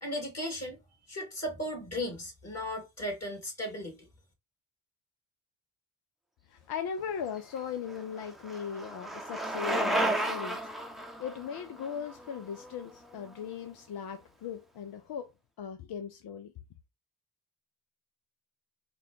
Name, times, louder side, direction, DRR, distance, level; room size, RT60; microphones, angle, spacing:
voice 1, 0.0-0.8 1.1-4.1, equal, 35° left, 2.3 m, -36 dB
voice 2, 6.5-15.3 15.6-16.5, left 7 dB, 55° left, 0.7 m, -38 dB
Bicycle, 7.4-13.3, right 1 dB, ahead, 0.8 m, -34 dB
3.8 x 2.3 x 3.7 m
hypercardioid pair, 40°, 46 cm